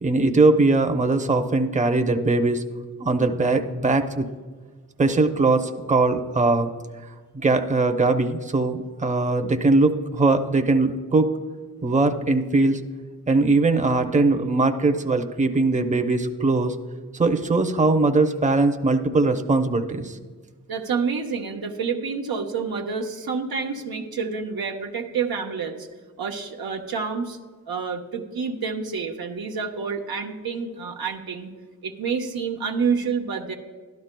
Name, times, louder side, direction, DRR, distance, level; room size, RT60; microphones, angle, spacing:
voice 1, 0.0-2.6 3.0-4.2 5.0-6.7 7.3-11.3 11.8-12.8 13.3-16.8 17.1-20.2, right 3 dB, 20° right, 5 dB, 0.7 m, -20 dB
voice 2, 20.7-25.9 26.2-27.4 27.7-31.5 31.8-33.5, right 5 dB, 85° right, 1 dB, 0.9 m, -28 dB
12.0 x 12.0 x 2.2 m, 1.4 s
cardioid pair, 55°, 36 cm